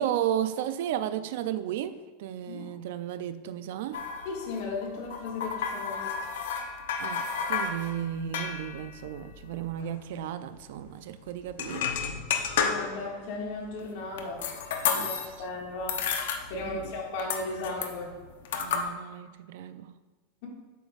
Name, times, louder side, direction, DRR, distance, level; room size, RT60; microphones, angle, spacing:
voice 1, 0.0-4.0 7.0-12.1 14.9-15.5 16.5-17.0 18.5-19.9, right 10 dB, 70° right, 0.5 m, -34 dB
sound 1, 3.9-9.9 10.2-10.3 10.6-10.8 11.5-13.2 13.7-15.5 15.8-16.9 17.2-18.8, left 6 dB, 80° left, 0.8 m, -32 dB
voice 2, 4.2-6.1 12.6-14.4 14.9-16.0 16.5-18.1, left 3 dB, 60° left, 1.9 m, -36 dB
8.3 x 7.1 x 2.5 m
supercardioid pair, 150°, 0 cm